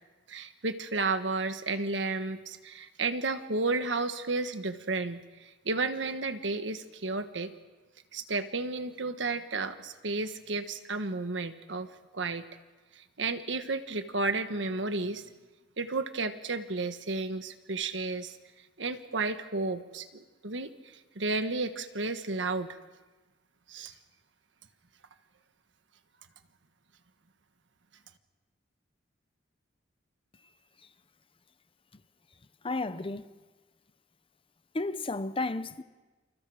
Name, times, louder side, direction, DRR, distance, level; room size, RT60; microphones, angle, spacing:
voice 1, 0.3-7.5 8.1-12.4 13.2-15.2 15.8-18.4 18.8-20.7 21.1-22.7 23.7-23.9, right 3 dB, 80° right, 1.5 m, -32 dB
voice 2, 32.6-33.3 34.7-35.8, left 2 dB, 30° left, 0.8 m, -32 dB
28.5 x 28.0 x 5.0 m
head